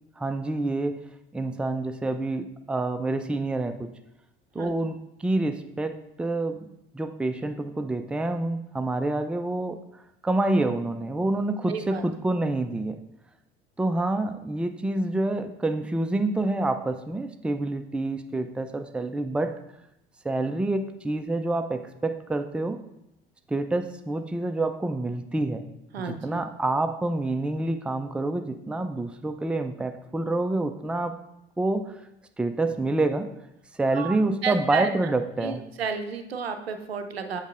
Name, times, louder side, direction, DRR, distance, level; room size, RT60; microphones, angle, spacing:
voice 1, 0.2-1.0 1.3-3.9 4.5-6.7 6.9-9.8 10.2-13.0 13.8-19.5 20.2-22.8 23.5-25.7 26.1-31.2 31.6-32.0 32.4-33.3 33.8-35.6, right 2 dB, 5° right, 8 dB, 0.4 m, -27 dB
voice 2, 11.7-12.0 25.9-26.4 33.9-34.2 34.4-35.1 35.4-37.4, right 5 dB, 85° right, 7 dB, 0.5 m, -32 dB
8.0 x 6.5 x 2.5 m, 0.85 s
figure-of-eight pair, 60°, 30 cm